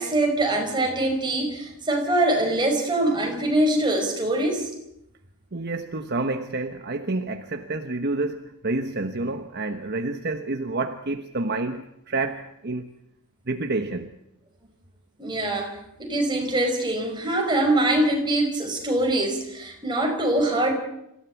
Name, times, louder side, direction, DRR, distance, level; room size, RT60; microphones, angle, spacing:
voice 1, 0.0-4.7 15.2-20.8, right 1 dB, 20° right, 5.3 m, -23 dB
voice 2, 5.5-12.9 13.5-14.1, right 2 dB, 50° right, 1.1 m, -29 dB
26.0 x 16.0 x 8.3 m
head